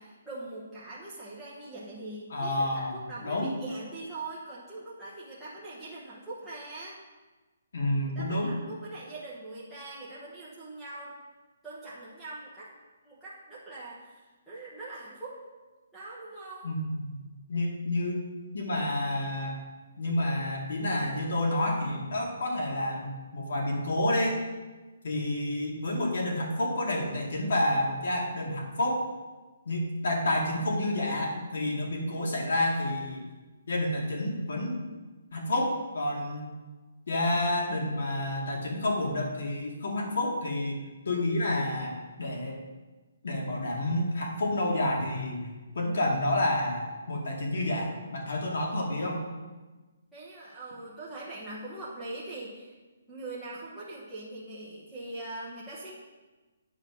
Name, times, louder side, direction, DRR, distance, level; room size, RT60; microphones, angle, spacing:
voice 1, 0.0-7.0 8.1-11.2 11.6-12.7 13.0-15.4 15.9-16.7 50.1-52.7 53.1-55.9, right 2 dB, ahead, -13 dB, 1.0 m, -42 dB
voice 2, 2.3-3.5 7.7-8.5 16.6-18.2 18.5-19.6 20.0-24.4 25.0-29.1 29.7-33.3 33.7-34.8 35.3-36.5 37.1-42.6 43.2-49.2, left 1 dB, 55° left, -1 dB, 2.3 m, -29 dB
9.5 x 4.9 x 6.0 m, 1.2 s
hypercardioid pair, 180°, 0 cm